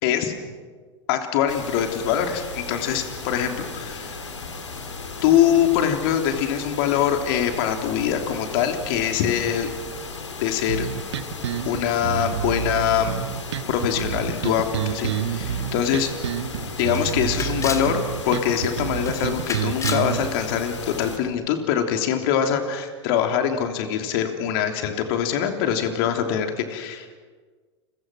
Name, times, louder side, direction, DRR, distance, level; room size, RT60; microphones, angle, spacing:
voice 1, 0.0-0.3 1.1-4.2 5.2-9.7 10.4-10.9 11.6-13.1 13.7-16.1 16.8-27.2, left 9 dB, 55° left, 5 dB, 3.2 m, -23 dB
sound 1, 1.5-21.2, left 4 dB, 85° left, 3.1 m, -36 dB
sound 2, 10.7-20.3, right 10 dB, 70° right, 1.5 m, -29 dB
Camera, 15.8-15.9 16.2-16.3 16.9-17.9 18.3-18.7 19.0-20.1, left 5 dB, 20° left, 2.2 m, -32 dB
29.5 x 22.5 x 6.3 m, 1.5 s
figure-of-eight pair, 90°, 15 cm